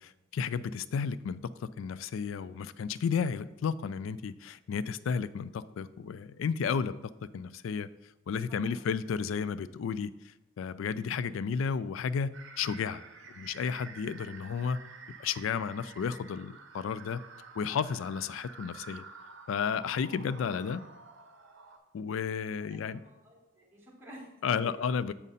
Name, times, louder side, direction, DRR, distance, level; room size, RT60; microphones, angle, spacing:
voice 1, 0.0-6.9 7.3-7.9 8.3-13.0 13.3-14.8 15.2-17.2 17.6-19.1 19.5-20.8 21.9-23.0 24.4-25.1, left 6 dB, 75° left, 16 dB, 0.3 m, -33 dB
sound 1, 12.3-21.8, right 4 dB, 60° right, 0.7 m, -50 dB
voice 2, 22.6-24.3 24.6-24.7, equal, 10° right, -5 dB, 1.5 m, -51 dB
7.3 x 5.2 x 4.1 m, 1.0 s
head